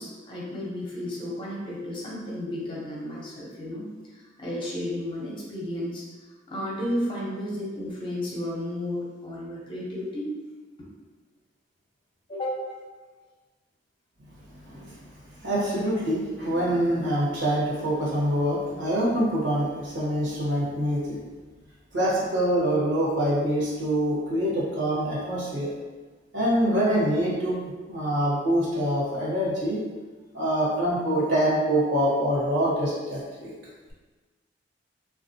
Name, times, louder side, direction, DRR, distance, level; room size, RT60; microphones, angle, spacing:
voice 1, 0.0-6.0 6.5-10.3 10.8-10.9 12.3-12.6, left 1 dB, 25° left, -5 dB, 0.6 m, -33 dB
voice 2, 15.4-21.2 21.9-25.7 26.3-27.6 27.9-29.8 30.3-33.5, right 1 dB, 70° right, -6 dB, 1.1 m, -25 dB
3.5 x 2.4 x 2.7 m, 1.3 s
head